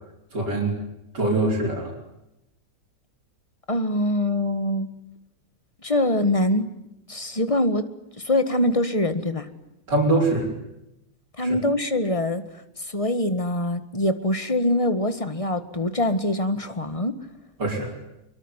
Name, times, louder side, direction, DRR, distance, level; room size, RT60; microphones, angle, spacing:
voice 1, 0.3-0.8 1.1-1.9 9.9-10.5 11.4-11.6 17.6-17.9, right 2 dB, 55° right, -6 dB, 5.6 m, -23 dB
voice 2, 3.7-4.9 5.8-6.6 7.1-7.8 8.2-9.5 11.4-12.4 12.9-17.1, left 1 dB, 15° left, 11 dB, 1.6 m, -23 dB
24.5 x 23.5 x 10.0 m, 0.87 s
omnidirectional pair, 2.2 m